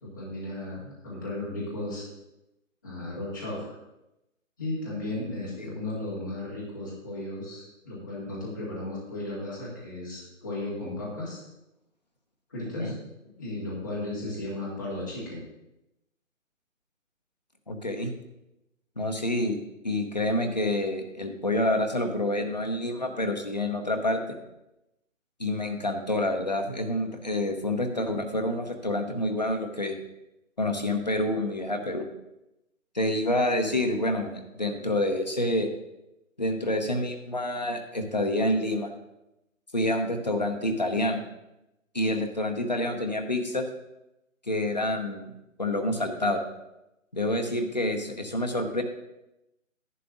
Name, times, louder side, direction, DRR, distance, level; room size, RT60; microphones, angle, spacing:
voice 1, 0.0-2.0 2.8-3.7 4.6-11.4 12.5-13.0 13.4-15.4, left 2 dB, 15° left, -8 dB, 1.9 m, -35 dB
voice 2, 17.7-18.1 19.0-19.6 19.8-24.2 25.4-30.0 30.6-32.1 32.9-35.8 36.4-38.9 39.7-41.2 41.9-43.6 44.5-45.3 45.6-46.4 47.1-48.8, left 1 dB, 30° left, 4 dB, 0.9 m, -28 dB
11.0 x 9.7 x 3.8 m, 0.91 s
hypercardioid pair, 180°, 40 cm